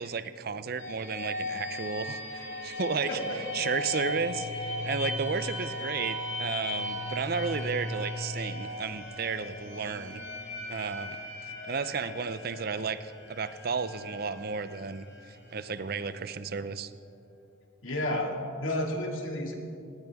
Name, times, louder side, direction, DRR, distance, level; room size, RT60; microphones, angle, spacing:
voice 1, 0.0-3.2 3.5-4.5 4.8-10.2 10.7-11.2 11.6-16.9, right 5 dB, 50° right, 13 dB, 0.5 m, -33 dB
sound 1, 0.8-16.4, left 1 dB, 60° left, 2.2 m, -37 dB
voice 2, 17.8-18.3 18.6-19.5, left 1 dB, 80° left, 1 dB, 2.4 m, -31 dB
19.0 x 18.0 x 3.6 m, 2.7 s
head